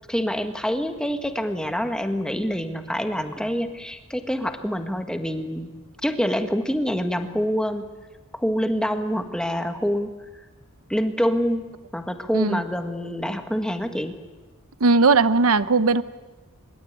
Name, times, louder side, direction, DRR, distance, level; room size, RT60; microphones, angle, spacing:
voice 1, 0.1-5.7 6.0-7.9 8.3-10.2 10.9-14.2, equal, 5° left, 7 dB, 1.7 m, -26 dB
voice 2, 14.8-16.0, right 4 dB, 85° right, 15 dB, 0.9 m, -18 dB
25.0 x 23.0 x 9.7 m, 1.2 s
head